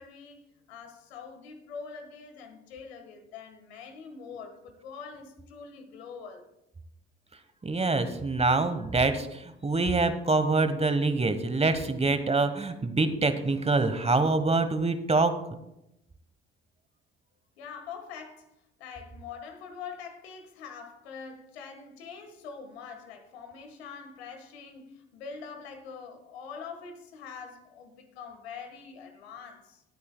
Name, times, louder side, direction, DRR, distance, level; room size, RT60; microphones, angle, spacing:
voice 1, 0.0-6.5 17.6-18.5 18.8-29.8, left 6 dB, 85° left, 1.5 m, -44 dB
voice 2, 7.6-15.3, right 3 dB, 20° right, 1.2 m, -25 dB
19.5 x 8.4 x 2.2 m
hypercardioid pair, 55°, 30 cm